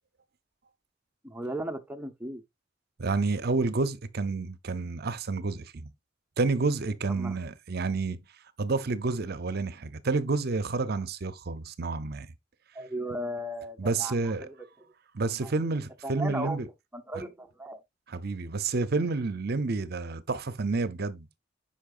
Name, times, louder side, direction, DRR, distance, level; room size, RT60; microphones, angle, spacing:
voice 1, 1.2-2.4 7.2-7.4 12.7-14.1 14.4-14.5 15.4-15.5 16.0-16.6 16.9-17.8, right 1 dB, 10° right, 0.8 m, -36 dB
voice 2, 3.0-5.9 6.4-8.2 8.6-12.3 13.8-14.5 15.1-16.7 17.1-17.2 18.1-21.4, right 3 dB, 55° right, 0.6 m, -29 dB
8.6 x 5.6 x 2.5 m
head